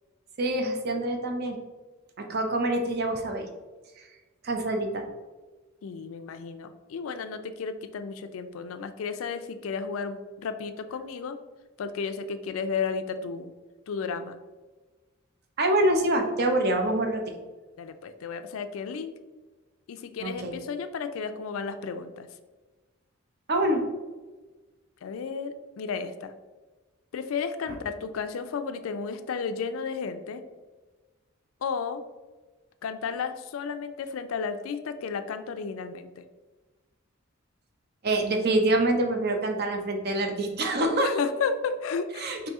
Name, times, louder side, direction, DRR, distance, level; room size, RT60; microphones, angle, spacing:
voice 1, 0.4-1.6 2.2-3.5 4.0-4.1 4.4-5.0 15.6-17.2 20.2-20.5 23.5-23.8 27.7-27.8 38.0-41.1 42.2-42.5, right 1 dB, 50° right, 4 dB, 0.6 m, -26 dB
voice 2, 5.8-11.4 11.8-13.5 13.9-14.4 17.8-19.1 19.9-22.3 25.0-26.3 27.1-30.4 31.6-32.0 32.8-36.2 41.0-42.3, left 5 dB, 85° left, 10 dB, 0.4 m, -33 dB
4.1 x 2.7 x 3.6 m, 1.3 s
head